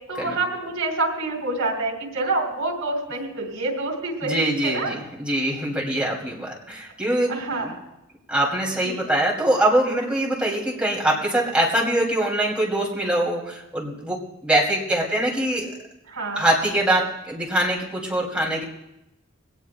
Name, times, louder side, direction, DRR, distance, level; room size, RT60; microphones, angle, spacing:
voice 1, 0.1-4.9 7.3-7.7 8.8-9.1 10.4-10.6 16.1-16.5, right 2 dB, 85° right, 1 dB, 3.8 m, -27 dB
voice 2, 4.2-7.7 8.3-15.8 16.4-18.6, right 1 dB, 5° right, -3 dB, 2.8 m, -23 dB
21.5 x 18.0 x 2.3 m, 0.90 s
head